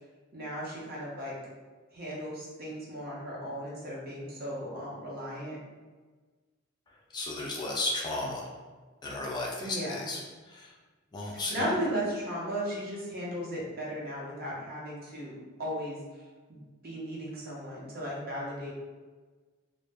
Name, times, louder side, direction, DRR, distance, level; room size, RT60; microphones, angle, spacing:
voice 1, 0.3-1.4 1.9-5.6 9.6-10.1 11.3-18.7, equal, 50° right, -4 dB, 0.7 m, -36 dB
voice 2, 7.1-8.4 9.0-10.2 10.5-10.7 11.1-11.7, left 2 dB, 20° left, -3 dB, 0.3 m, -34 dB
2.0 x 2.0 x 3.3 m, 1.4 s
head